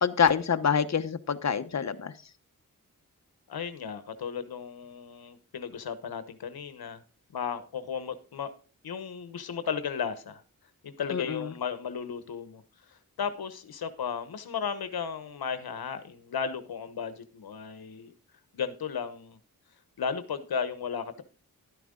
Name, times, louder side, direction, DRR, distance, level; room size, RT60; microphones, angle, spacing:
voice 1, 0.0-2.1 11.1-11.5, left 7 dB, 45° left, 10 dB, 1.0 m, -26 dB
voice 2, 3.5-7.0 7.3-8.5 8.8-10.4 10.8-12.6 12.9-18.1 18.5-19.4 20.0-21.2, left 6 dB, 80° left, 11 dB, 1.1 m, -35 dB
12.0 x 9.2 x 3.7 m, 0.36 s
cardioid pair, 65°, 36 cm